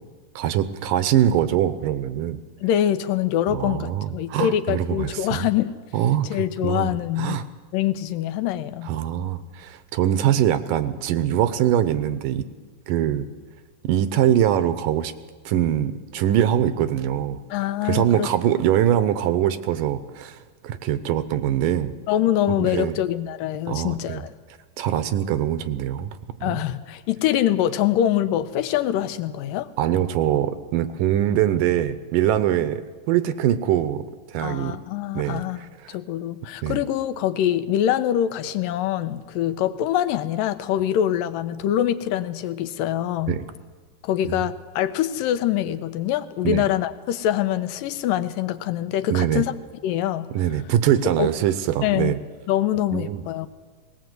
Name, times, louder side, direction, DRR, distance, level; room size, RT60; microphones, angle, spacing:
voice 1, 0.4-2.4 3.5-5.5 5.9-6.3 6.6-7.4 8.9-12.5 12.9-13.3 13.8-15.1 15.5-17.4 17.8-21.9 22.5-23.0 23.7-24.2 24.8-26.6 29.8-32.8 33.1-34.0 34.3-34.8 35.1-36.0 36.6-36.8 43.3-43.5 44.3-44.4 46.4-46.7 49.1-49.4 50.3-52.2 52.9-53.2, right 11 dB, 80° right, 12 dB, 2.4 m, -23 dB
voice 2, 2.6-5.7 6.2-7.5 7.7-8.9 17.5-18.3 22.1-24.3 26.4-29.7 34.4-43.4 44.0-49.5 49.8-50.3 51.2-51.3 51.8-52.2 52.5-53.5, left 11 dB, 80° left, 11 dB, 2.4 m, -24 dB
19.5 x 18.5 x 7.9 m, 1.4 s
omnidirectional pair, 3.9 m